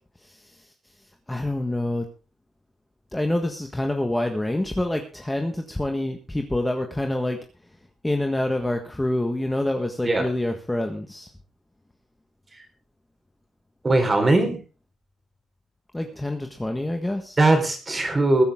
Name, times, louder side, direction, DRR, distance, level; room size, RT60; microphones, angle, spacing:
voice 1, 1.3-2.1 3.1-7.4 8.0-11.3 15.9-17.4, left 1 dB, 10° left, 4 dB, 1.5 m, -26 dB
voice 2, 13.8-14.6 17.4-18.4, right 2 dB, 25° right, 6 dB, 4.2 m, -19 dB
21.0 x 8.9 x 3.6 m, 0.32 s
cardioid pair, 115°, 0 cm